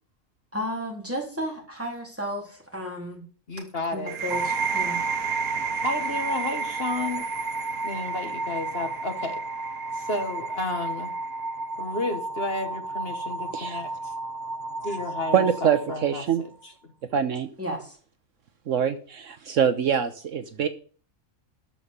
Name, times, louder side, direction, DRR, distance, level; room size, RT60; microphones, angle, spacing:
voice 1, 0.5-3.2 3.9-5.0 17.6-18.0, equal, 10° right, 0 dB, 3.6 m, -33 dB
voice 2, 3.5-4.2 5.8-7.3 7.8-9.4 9.9-11.1 11.8-14.1 14.8-16.2 16.6-16.7, left 2 dB, 45° left, 5 dB, 1.7 m, -32 dB
sound 1, 4.1-11.6, right 9 dB, 85° right, 1.4 m, -34 dB
sound 2, 4.3-16.5, right 2 dB, 35° right, 1.0 m, -33 dB
voice 3, 15.3-16.4 17.1-17.5 18.7-20.7, right 8 dB, 65° right, 10 dB, 1.1 m, -24 dB
13.5 x 5.5 x 8.0 m, 0.42 s
omnidirectional pair, 1.5 m